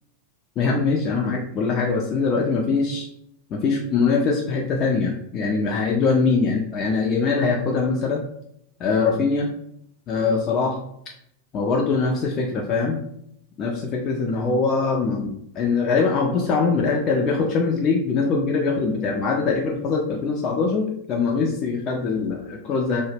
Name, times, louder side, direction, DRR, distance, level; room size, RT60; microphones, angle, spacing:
voice 1, 0.6-3.1 3.5-8.2 8.8-9.5 10.1-10.8 11.5-13.0 13.6-23.0, left 4 dB, 30° left, 0 dB, 0.3 m, -22 dB
2.0 x 2.0 x 3.2 m, 0.75 s
figure-of-eight pair, 90°, 0 cm